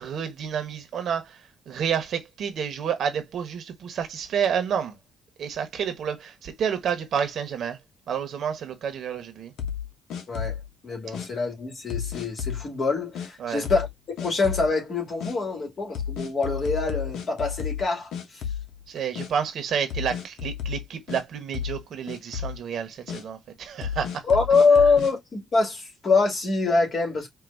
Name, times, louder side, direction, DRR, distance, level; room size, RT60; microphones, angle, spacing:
voice 1, 0.0-5.0 5.4-7.8 8.1-9.5 13.4-13.7 18.9-24.2, right 7 dB, 65° right, 1.2 m, -29 dB
sound 1, 9.6-10.7 11.1-11.3 11.9-12.6 13.1-13.3 13.6-13.9 14.2-14.7 15.2-15.3 15.9-17.9 18.1-18.8 19.1-19.3 19.9-21.2 21.5-21.8 22.1-22.6 23.1-23.2 23.8-25.1, left 8 dB, 80° left, 0.8 m, -32 dB
voice 2, 10.3-10.6 10.8-13.9 14.1-18.4 24.3-27.3, left 4 dB, 45° left, 2.5 m, -24 dB
4.8 x 2.6 x 2.6 m
cardioid pair, 90°, 0 cm